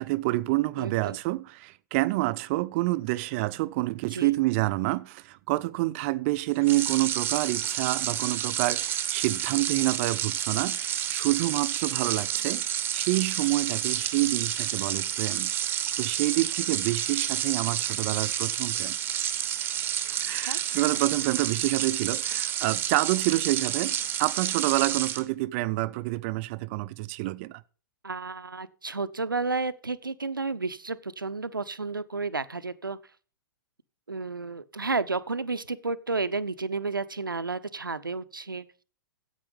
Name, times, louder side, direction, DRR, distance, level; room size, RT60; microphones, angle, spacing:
voice 1, 0.0-15.5 16.0-19.0 20.2-27.6, right 19 dB, 40° right, 0.5 m, -28 dB
voice 2, 0.8-1.2 4.1-4.3 20.3-20.8 28.0-33.0 34.1-38.7, right 3 dB, 85° right, 0.7 m, -32 dB
sound 1, 6.6-25.2, right 10 dB, 20° right, 1.0 m, -30 dB
10.0 x 8.2 x 5.4 m
figure-of-eight pair, 105°, 11 cm